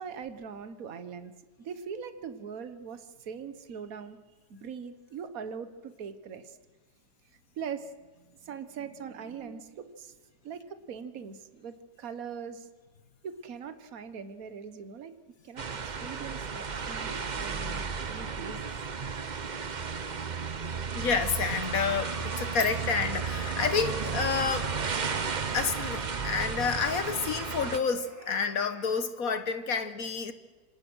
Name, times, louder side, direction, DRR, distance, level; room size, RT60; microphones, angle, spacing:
voice 1, 0.0-4.2 4.5-6.6 7.6-7.9 8.2-10.2 10.4-12.7 13.2-15.1 15.4-18.6 23.7-24.1, right 6 dB, 60° right, 11 dB, 1.6 m, -41 dB
sound 1, 15.6-27.8, right 5 dB, 35° right, 0.8 m, -34 dB
voice 2, 20.9-24.7 25.5-30.3, left 5 dB, 60° left, 11 dB, 1.6 m, -29 dB
sound 2, 20.9-28.9, left 2 dB, 10° right, 3.6 m, -47 dB
27.0 x 26.0 x 6.3 m, 1.3 s
omnidirectional pair, 1.7 m